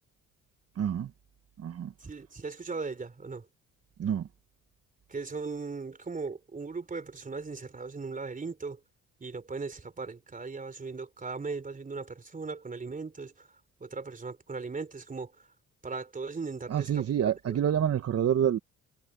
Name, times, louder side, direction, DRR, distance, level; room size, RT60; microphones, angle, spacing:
voice 1, 0.7-1.1 1.6-1.9 4.0-4.3 16.7-18.6, right 9 dB, 55° right, 1.3 m, -27 dB
voice 2, 2.0-3.5 5.1-8.8 9.2-13.5 13.8-15.5 15.8-17.1 17.5-17.6, right 4 dB, 25° right, 3.6 m, -38 dB
cardioid pair, 90°, 30 cm